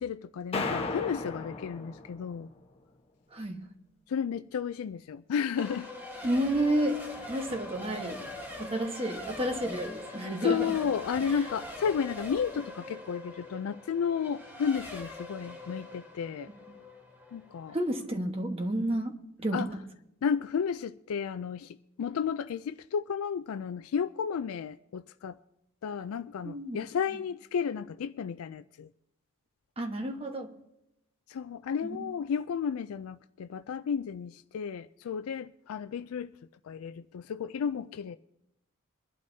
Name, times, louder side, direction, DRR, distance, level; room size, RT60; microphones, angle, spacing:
voice 1, 0.0-2.5 4.1-5.9 10.4-16.5 17.3-17.8 19.5-19.7 20.2-25.4 25.8-28.9 31.3-36.3 36.7-38.2, left 7 dB, 75° left, 0.3 m, -32 dB
sound 1, 0.5-2.5, left 3 dB, 25° left, 1.2 m, -35 dB
Race car auto racing / Accelerating revving vroom / Mechanisms, 5.6-18.1, left 1 dB, 10° right, 1.3 m, -43 dB
voice 2, 6.2-8.3 8.6-10.8 11.2-11.5 17.7-19.8 26.4-26.8 29.8-30.5 31.8-32.1, right 1 dB, 25° right, 1.2 m, -31 dB
23.5 x 11.5 x 2.7 m
head